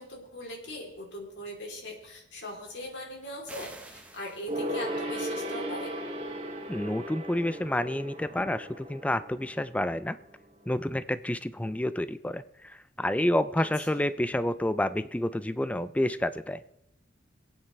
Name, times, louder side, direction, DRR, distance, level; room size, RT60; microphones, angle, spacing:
voice 1, 0.0-5.9 13.6-13.7 13.9-14.0, left 1 dB, 75° left, 0 dB, 3.3 m, -40 dB
sound 1, 3.5-5.1, right 2 dB, 5° right, 1.1 m, -48 dB
Gong, 4.5-10.4 10.6-10.7, equal, 35° right, 2.4 m, -36 dB
voice 2, 6.7-10.2 10.7-16.6, left 1 dB, 10° left, 14 dB, 0.4 m, -29 dB
23.0 x 8.9 x 3.3 m, 0.81 s
head